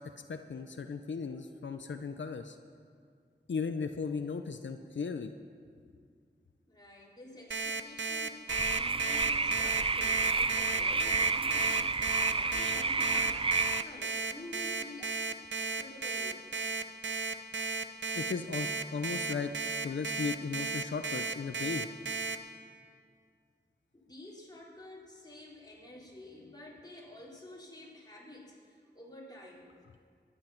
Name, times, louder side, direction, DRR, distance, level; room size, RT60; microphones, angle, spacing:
voice 1, 0.3-2.6 3.5-5.3 18.1-19.5 19.8-21.9, left 5 dB, 90° left, 7 dB, 0.6 m, -36 dB
voice 2, 6.7-15.1 15.6-16.5 23.9-29.7, left 1 dB, 20° left, -5 dB, 3.9 m, -50 dB
Alarm, 7.5-22.4, right 4 dB, 85° right, 0.8 m, -34 dB
sound 1, 8.5-13.8, right 4 dB, 30° right, 0.4 m, -30 dB
23.0 x 10.0 x 5.8 m, 2.2 s
wide cardioid pair, 75°, 19 cm